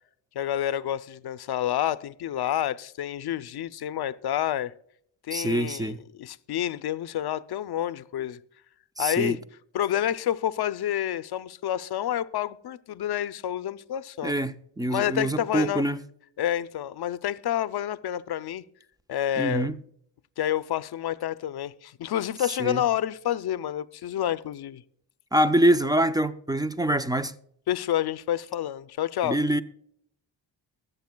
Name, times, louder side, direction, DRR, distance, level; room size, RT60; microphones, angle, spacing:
voice 1, 0.3-4.7 5.3-8.4 9.0-9.4 9.7-14.3 14.9-15.9 16.4-18.6 19.1-19.7 20.4-24.8 27.7-29.4, left 11 dB, 55° left, 0.5 m, -29 dB
voice 2, 5.3-6.0 9.0-9.4 14.2-16.0 19.4-19.7 22.6-22.8 25.3-27.3 29.2-29.6, right 1 dB, 10° right, 0.3 m, -25 dB
23.5 x 7.9 x 2.2 m
cardioid pair, 110°, 47 cm